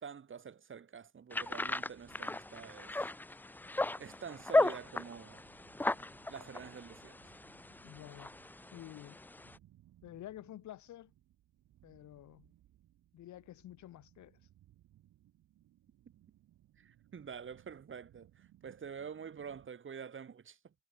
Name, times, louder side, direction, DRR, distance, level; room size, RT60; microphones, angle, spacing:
voice 1, 0.0-2.9 4.0-5.4 6.3-7.2 16.8-20.7, right 7 dB, 40° right, 2.1 m, -47 dB
sound 1, 1.3-9.6, left 2 dB, 5° left, 0.4 m, -36 dB
sound 2, 1.6-19.7, right 13 dB, 80° right, 3.7 m, -66 dB
voice 2, 7.8-8.3 8.7-9.2 10.0-11.1 11.8-12.5 13.1-14.4, left 13 dB, 70° left, 1.2 m, -50 dB
cardioid pair, 90°, 30 cm